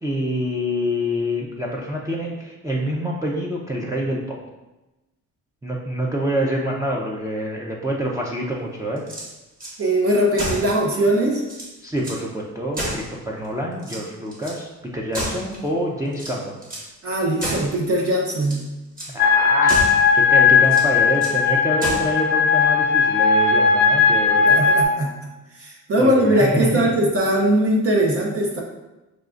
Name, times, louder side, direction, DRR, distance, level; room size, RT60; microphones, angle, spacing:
voice 1, 0.0-4.4 5.6-9.0 11.8-16.6 19.1-19.9 20.1-24.6 26.0-26.9, equal, 10° right, -4 dB, 0.6 m, -26 dB
sound 1, 9.0-9.8 10.3-10.7 11.1-11.2 11.4-12.2 12.7-13.5 13.8-14.6 15.1-15.7 16.1-16.9 17.4-17.8 18.3-18.7 19.0-19.2 19.7-20.1 20.6-21.4 21.8-22.2, right 1 dB, 30° right, 1.4 m, -30 dB
voice 2, 9.8-11.4 17.0-18.6 24.5-25.1 25.5-28.6, right 1 dB, 50° right, -1 dB, 0.8 m, -20 dB
sound 2, 19.2-24.8, left 5 dB, 35° left, 0.7 m, -17 dB
6.3 x 2.4 x 2.5 m, 1.0 s
cardioid pair, 90°, 30 cm